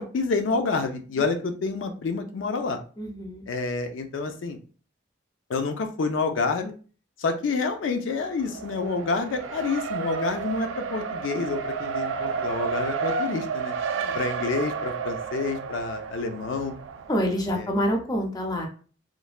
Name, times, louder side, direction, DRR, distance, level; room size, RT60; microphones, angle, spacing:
voice 1, 0.0-2.8 3.5-4.6 5.5-6.7 7.2-13.7 14.1-16.8 17.5-17.7, left 4 dB, 90° left, 6 dB, 0.4 m, -28 dB
voice 2, 3.0-3.4 13.9-14.2 17.1-18.7, equal, 20° left, 3 dB, 0.4 m, -27 dB
Race car auto racing, 8.3-17.4, right 5 dB, 85° right, 0.3 m, -31 dB
3.1 x 2.1 x 2.4 m, 0.40 s
head